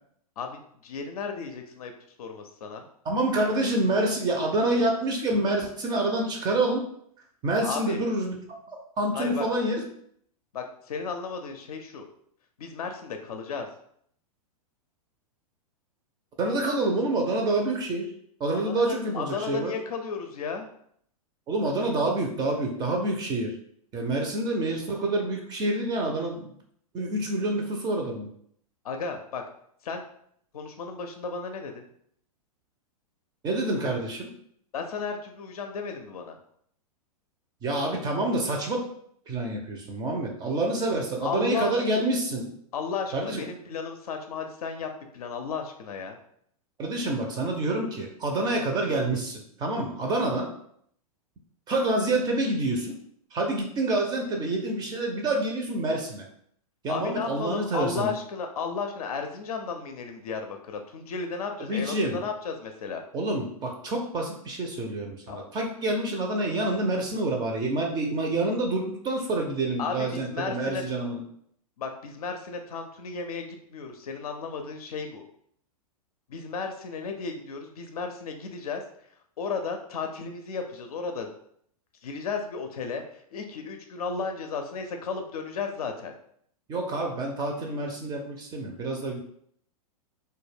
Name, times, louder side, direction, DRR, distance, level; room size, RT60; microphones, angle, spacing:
voice 1, 0.4-1.9 2.2-2.9 7.6-8.0 9.1-9.4 10.5-12.0 12.6-13.7 18.7-20.7 28.8-29.4 29.8-30.0 30.5-31.9 34.7-36.4 41.2-42.0 42.7-46.2 56.9-63.0 65.3-65.4 69.8-70.8 71.8-75.2 76.3-78.8 79.4-81.3 82.0-86.1, left 5 dB, 75° left, 5 dB, 0.4 m, -34 dB
voice 2, 3.0-6.9 7.4-8.3 8.7-9.8 16.4-18.1 18.4-19.7 21.5-23.6 23.9-26.5 26.9-28.3 33.4-34.3 37.6-38.8 39.3-42.5 43.1-43.4 46.8-50.5 51.7-53.0 53.3-56.3 56.8-58.1 61.7-62.2 63.1-71.2 86.7-89.2, right 2 dB, 20° right, 1 dB, 0.4 m, -27 dB
2.2 x 2.1 x 3.2 m, 0.67 s
hypercardioid pair, 110°, 19 cm